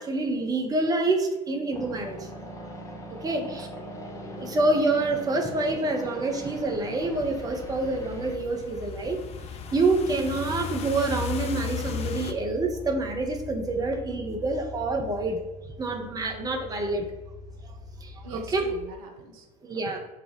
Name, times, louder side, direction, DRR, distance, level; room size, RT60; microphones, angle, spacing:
voice 1, 0.0-2.3 3.2-3.7 4.4-9.2 9.7-15.4 15.8-17.1 18.0-18.7 19.6-20.0, right 2 dB, 20° right, 2 dB, 0.8 m, -27 dB
sound 1, 1.7-8.4, equal, 15° left, 0.8 m, -41 dB
voice 2, 3.3-4.1 18.2-19.5 19.9-20.0, right 3 dB, 65° right, 3 dB, 0.7 m, -44 dB
sound 2, 6.5-12.3, left 9 dB, 35° left, 0.4 m, -36 dB
sound 3, 7.1-18.8, left 2 dB, 70° left, 0.9 m, -43 dB
5.7 x 2.4 x 3.2 m, 1.1 s
figure-of-eight pair, 65°, 20 cm